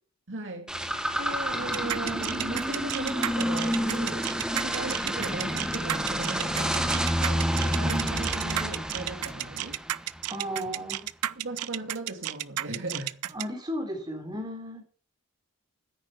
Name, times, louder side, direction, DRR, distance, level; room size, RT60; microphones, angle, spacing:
voice 1, 0.3-0.7 1.2-9.8 11.4-13.4, right 2 dB, 60° right, 2.2 m, -37 dB
sound 1, 0.7-10.2, equal, 5° right, 1.5 m, -29 dB
sound 2, 1.7-13.4, right 14 dB, 85° right, 0.5 m, -32 dB
voice 2, 10.3-11.1 13.3-14.8, equal, 20° right, 3.4 m, -34 dB
10.0 x 8.8 x 7.0 m
head